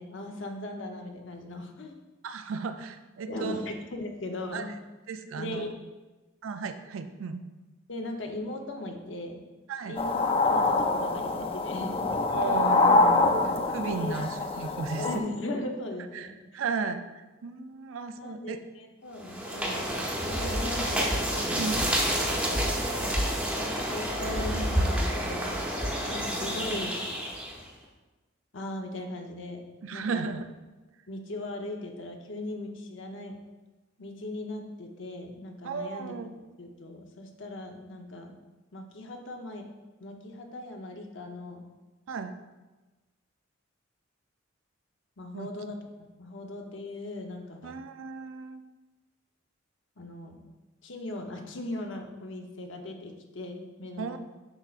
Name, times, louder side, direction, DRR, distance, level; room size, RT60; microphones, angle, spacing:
voice 1, 0.0-2.0 3.3-4.7 5.3-5.7 7.9-9.4 9.9-12.0 13.9-14.1 14.9-16.4 18.2-19.9 20.2-21.3 23.9-25.5 26.0-27.0 28.5-29.6 29.9-30.3 31.1-33.4 34.0-36.1 36.6-38.3 38.7-39.6 40.0-41.6 45.2-45.8 46.2-47.8 50.0-50.4 50.8-54.2, left 1 dB, 65° left, 3 dB, 0.8 m, -38 dB
voice 2, 2.2-3.7 4.5-4.7 5.1-5.7 6.4-7.5 9.7-10.0 12.3-15.2 16.1-16.3 16.5-18.6 21.5-21.9 29.8-30.5 35.6-36.3 42.1-42.4 45.3-45.5 47.6-48.6 54.0-54.2, right 5 dB, 90° right, 9 dB, 0.5 m, -35 dB
sound 1, 10.0-15.2, left 3 dB, 30° left, 0.4 m, -25 dB
sound 2, 19.2-27.6, equal, 5° right, 0.8 m, -29 dB
8.0 x 5.6 x 2.5 m, 1.2 s
head